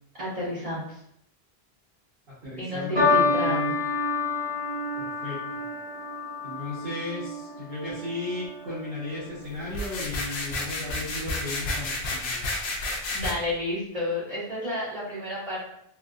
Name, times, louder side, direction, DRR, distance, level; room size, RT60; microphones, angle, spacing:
voice 1, 0.2-1.0 2.6-3.8 13.1-15.6, left 1 dB, 35° right, -10 dB, 1.6 m, -31 dB
voice 2, 2.3-3.8 5.0-5.6 6.4-12.4, left 2 dB, 65° right, -10 dB, 1.1 m, -35 dB
sound 1, 3.0-9.5 10.3-10.7, left 3 dB, 85° right, 1.7 m, -29 dB
sound 2, 9.7-13.3, left 2 dB, 85° left, 0.8 m, -31 dB
3.2 x 2.5 x 2.3 m, 0.72 s
omnidirectional pair, 1.0 m